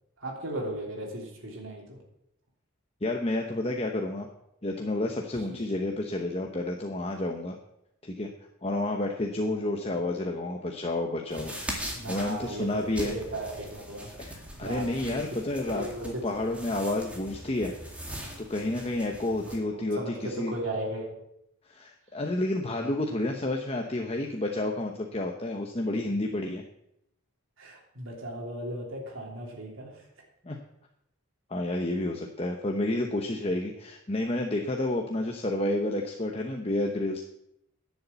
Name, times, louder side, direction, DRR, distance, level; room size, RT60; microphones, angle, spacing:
voice 1, 0.2-2.0 11.9-14.1 14.6-15.2 15.7-16.7 17.2-17.3 19.7-21.2 27.6-30.1, right 1 dB, 65° right, -1 dB, 3.2 m, -36 dB
voice 2, 3.0-4.3 4.6-7.6 8.0-8.3 8.6-11.5 12.1-13.1 14.2-15.9 16.2-17.7 18.5-20.5 21.7-26.6 30.4-30.6 31.5-37.2, left 1 dB, 30° left, 2 dB, 0.9 m, -30 dB
sound 1, 11.3-19.6, right 1 dB, 5° right, 2.1 m, -41 dB
11.0 x 7.1 x 8.1 m, 0.79 s
head